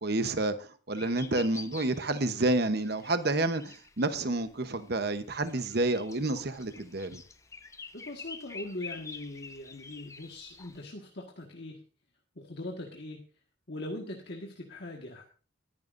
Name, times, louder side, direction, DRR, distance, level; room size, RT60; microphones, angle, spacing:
voice 1, 0.0-7.2, right 2 dB, 50° right, 10 dB, 0.9 m, -29 dB
sound 1, 1.0-10.8, left 4 dB, 15° left, 0.6 m, -48 dB
voice 2, 7.9-11.8 12.3-13.2 13.7-15.2, left 1 dB, 55° left, 0 dB, 1.6 m, -41 dB
20.5 x 10.5 x 2.6 m, 0.39 s
head